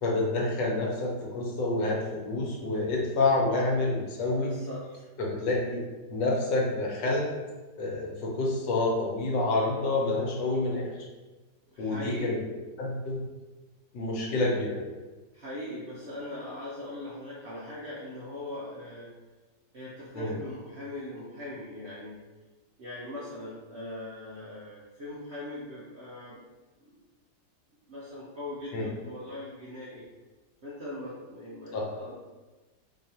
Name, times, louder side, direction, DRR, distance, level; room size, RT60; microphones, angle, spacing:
voice 1, 0.0-4.5 5.2-5.8 6.1-7.3 7.8-10.9 11.8-12.4 12.8-13.2 13.9-14.8 20.1-20.3 28.7-28.9 31.7-31.9, left 2 dB, 80° left, -2 dB, 1.4 m, -28 dB
voice 2, 4.3-5.1 11.7-12.4 15.3-19.1 19.7-22.2 22.8-26.4 26.8-27.0 27.9-30.0 30.6-32.1, left 1 dB, 60° right, -7 dB, 0.7 m, -40 dB
3.9 x 2.9 x 2.8 m, 1.2 s
omnidirectional pair, 1.9 m